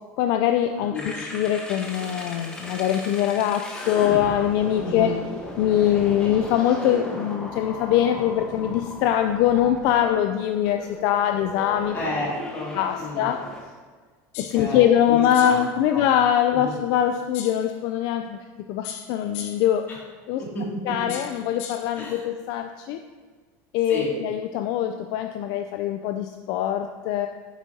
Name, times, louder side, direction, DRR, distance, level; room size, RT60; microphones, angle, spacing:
voice 1, 0.2-5.2 5.6-12.0 12.7-13.5 14.4-18.4 18.7-19.9 20.3-20.4 20.8-23.0 23.7-27.3, left 10 dB, 60° left, 7 dB, 0.4 m, -23 dB
voice 2, 0.9-1.2 4.8-5.2 6.2-6.4 11.9-12.7 13.0-13.3 14.5-15.6 15.9-16.0 16.6-16.7 20.4-20.9 22.0-22.2 23.9-24.1, left 1 dB, 25° left, -4 dB, 2.4 m, -31 dB
sound 1, 1.0-13.6, left 1 dB, 10° left, 1.1 m, -36 dB
sound 2, 14.3-14.7 15.3-15.7 17.3-17.7 18.8-19.7 21.1-21.9, left 8 dB, 75° left, 0.8 m, -38 dB
9.8 x 7.1 x 2.8 m, 1.5 s
cardioid pair, 155°, 8 cm